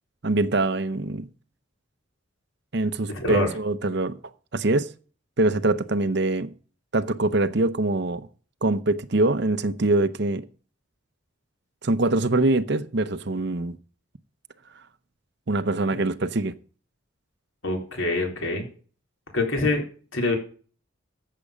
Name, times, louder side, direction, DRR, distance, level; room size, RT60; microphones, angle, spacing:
voice 1, 0.2-1.3 2.7-4.2 4.5-4.9 5.4-6.5 6.9-8.3 8.6-10.5 11.8-13.8 15.5-16.5, right 2 dB, 55° right, 0.7 m, -23 dB
voice 2, 3.1-3.5 17.6-18.7 19.3-19.8 20.1-20.4, left 2 dB, 75° left, 4.0 m, -25 dB
14.0 x 7.6 x 5.1 m
head